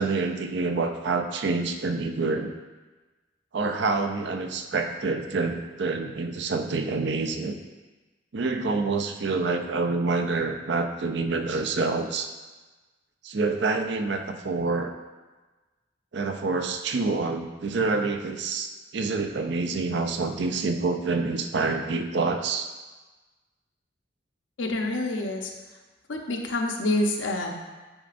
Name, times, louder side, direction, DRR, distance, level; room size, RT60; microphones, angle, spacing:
voice 1, 0.0-2.5 3.5-7.6 8.3-12.3 13.2-14.9 16.1-22.7, right 3 dB, 65° right, 6 dB, 0.5 m, -27 dB
voice 2, 24.6-25.5 26.1-27.5, left 2 dB, 80° left, 2 dB, 0.8 m, -27 dB
8.7 x 4.9 x 2.5 m, 1.2 s
head